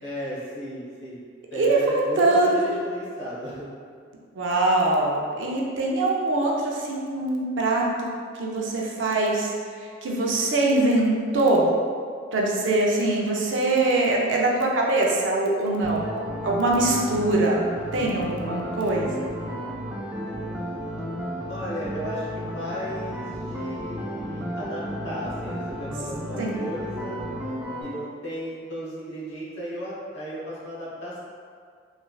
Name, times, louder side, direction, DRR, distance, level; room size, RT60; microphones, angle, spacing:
voice 1, 0.0-1.2 1.5-3.7 18.4-18.6 20.1-21.0 21.5-27.2 27.8-31.2, equal, 65° left, -8 dB, 0.9 m, -35 dB
voice 2, 1.5-2.7 4.3-8.1 8.4-9.5 9.8-11.7 12.3-17.6 17.9-19.3 26.4-26.6, right 2 dB, 70° right, -2 dB, 0.5 m, -23 dB
sound 1, 15.8-27.8, equal, 10° right, 0.3 m, -33 dB
3.1 x 2.5 x 2.2 m, 2.1 s
head